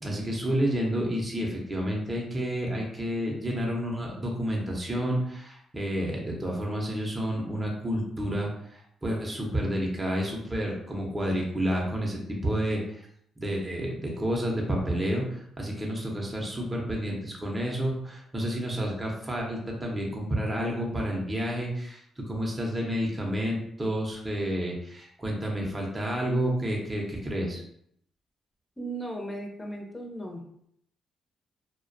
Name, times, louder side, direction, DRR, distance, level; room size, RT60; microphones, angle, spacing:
voice 1, 0.0-13.1 13.4-27.6, equal, 20° right, -1 dB, 0.6 m, -30 dB
voice 2, 28.8-30.4, right 1 dB, 20° left, 1 dB, 0.6 m, -36 dB
2.3 x 2.1 x 2.5 m, 0.70 s
supercardioid pair, 70°, 0 cm